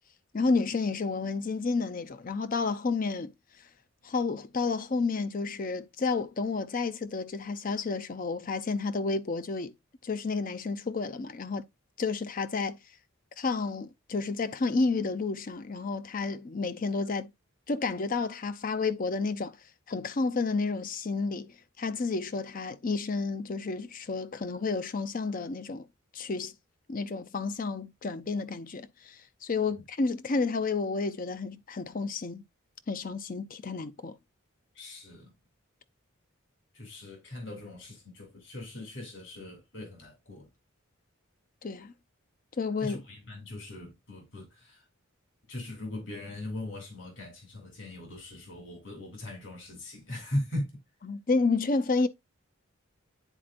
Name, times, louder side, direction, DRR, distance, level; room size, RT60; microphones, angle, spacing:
voice 1, 0.3-3.3 4.0-9.7 10.0-11.7 12.0-12.8 13.4-17.3 17.7-19.6 19.9-25.9 26.1-26.5 26.9-32.4 32.9-34.2 41.6-41.9 42.6-43.0 51.0-52.1, left 4 dB, 40° left, 0.5 m, -31 dB
voice 2, 34.8-35.3 36.7-40.5 42.8-44.8 45.5-50.7, left 1 dB, 60° left, 2.5 m, -39 dB
9.9 x 4.3 x 2.5 m
head